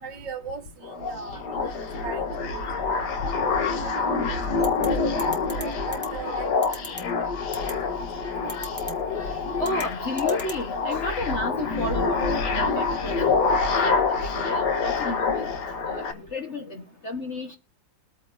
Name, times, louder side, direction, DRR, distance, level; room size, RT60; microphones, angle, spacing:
voice 1, 0.0-2.6 3.7-4.7 5.1-6.7 7.0-7.6 8.3-8.4 8.9-9.0, right 4 dB, 65° right, 2.2 m, -39 dB
sound 1, 0.8-16.1, left 4 dB, 60° left, 1.7 m, -26 dB
sound 2, 4.6-4.9 5.2-5.6 5.9-6.1 6.6-7.0 7.5-7.7 8.5-8.9 9.6-9.8 10.2-10.6, equal, 5° left, 1.2 m, -36 dB
voice 2, 9.1-15.5 15.9-17.6, left 2 dB, 45° left, 1.2 m, -32 dB
22.0 x 8.8 x 2.6 m
omnidirectional pair, 2.1 m